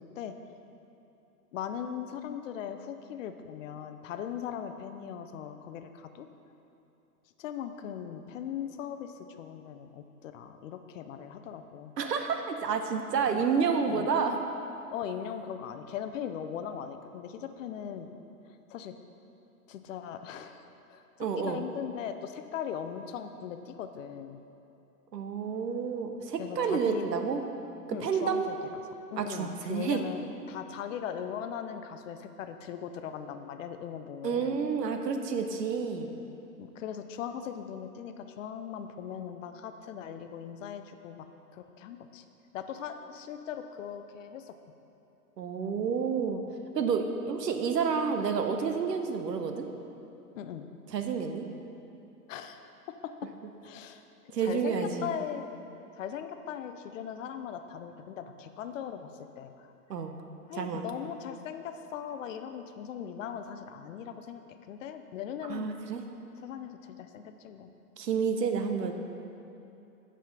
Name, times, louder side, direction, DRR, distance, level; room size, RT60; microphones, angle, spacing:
voice 1, 1.5-6.3 7.4-11.9 13.3-13.4 13.9-14.1 14.9-18.2 18.7-18.9 19.7-20.6 20.9-24.4 26.4-27.1 27.9-28.8 29.1-34.6 36.6-41.3 41.5-42.2 42.5-44.5 50.4-50.7 52.3-52.6 53.6-54.0 54.4-55.4 55.9-59.7 60.5-64.4 64.7-65.8 66.4-67.7, left 8 dB, 55° left, 8 dB, 0.6 m, -39 dB
voice 2, 12.0-14.4 21.2-21.6 25.1-27.4 28.0-28.5 29.2-30.0 34.2-36.1 45.4-46.4 46.8-49.7 50.9-51.5 54.3-55.1 59.9-60.1 60.6-60.8 65.5-66.0 68.0-68.9, right 6 dB, 85° right, 6 dB, 0.8 m, -29 dB
7.9 x 5.0 x 5.1 m, 2.9 s
hypercardioid pair, 115°, 48 cm